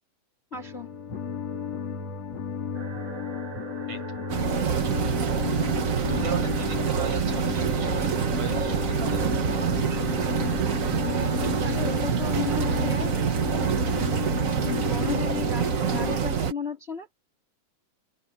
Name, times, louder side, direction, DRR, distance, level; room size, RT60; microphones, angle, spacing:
sound 1, 0.5-16.2, left 7 dB, 60° left, 4.0 m, -33 dB
voice 1, 0.5-0.9 11.6-13.1 14.7-17.1, left 5 dB, 25° left, 1.9 m, -35 dB
sound 2, 2.7-16.5, right 10 dB, 50° right, 2.3 m, -43 dB
voice 2, 3.9-4.2 5.7-9.2, right 6 dB, 65° right, 8.1 m, -37 dB
sound 3, 4.3-16.5, right 7 dB, 85° right, 0.7 m, -26 dB
omnidirectional pair, 3.4 m